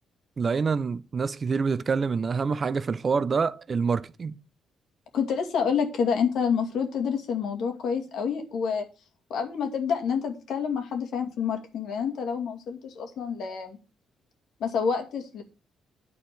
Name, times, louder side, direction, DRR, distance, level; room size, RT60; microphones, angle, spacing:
voice 1, 0.4-4.4, right 5 dB, 40° right, 0.6 m, -26 dB
voice 2, 5.1-8.8 9.3-13.8 14.6-15.4, left 6 dB, 75° left, 2.2 m, -28 dB
9.8 x 4.4 x 7.7 m
cardioid pair, 90°, 0 cm